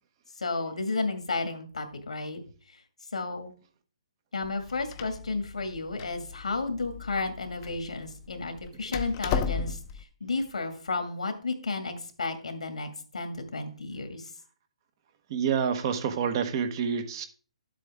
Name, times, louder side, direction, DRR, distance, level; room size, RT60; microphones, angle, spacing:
voice 1, 0.4-2.4 3.1-3.5 4.3-9.8 10.2-14.2, left 3 dB, 85° left, 6 dB, 2.1 m, -32 dB
Door, 4.4-10.0, left 6 dB, 30° left, 0.8 m, -35 dB
voice 2, 15.3-17.2, right 7 dB, 40° right, 8 dB, 1.2 m, -28 dB
11.5 x 7.6 x 3.6 m, 0.41 s
hypercardioid pair, 145°, 3 cm